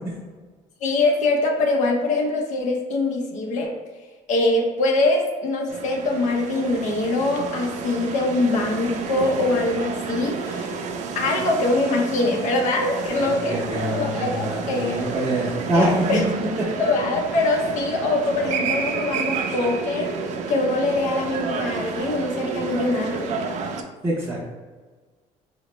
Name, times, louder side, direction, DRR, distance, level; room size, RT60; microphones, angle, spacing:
voice 1, 0.8-3.7 4.3-10.8 11.1-15.0 15.7-16.2 16.7-20.1 20.5-23.4, left 2 dB, 60° left, 1 dB, 0.6 m, -23 dB
sound 1, 5.7-23.8, right 5 dB, 55° right, 0.4 m, -30 dB
voice 2, 13.2-15.9 24.0-24.4, right 1 dB, 20° right, -6 dB, 0.6 m, -25 dB
4.1 x 2.1 x 2.9 m, 1.4 s
cardioid pair, 140°, 14 cm